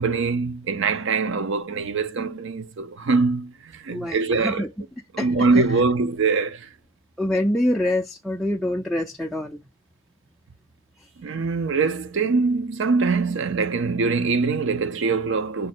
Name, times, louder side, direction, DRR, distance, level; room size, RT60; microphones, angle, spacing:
voice 1, 0.0-4.6 5.1-6.7 11.2-15.7, right 4 dB, 60° right, 0.5 m, -23 dB
voice 2, 3.9-4.7 5.2-5.8 7.2-9.6 11.0-11.1, left 1 dB, ahead, 0.3 m, -26 dB
5.2 x 2.2 x 4.1 m
head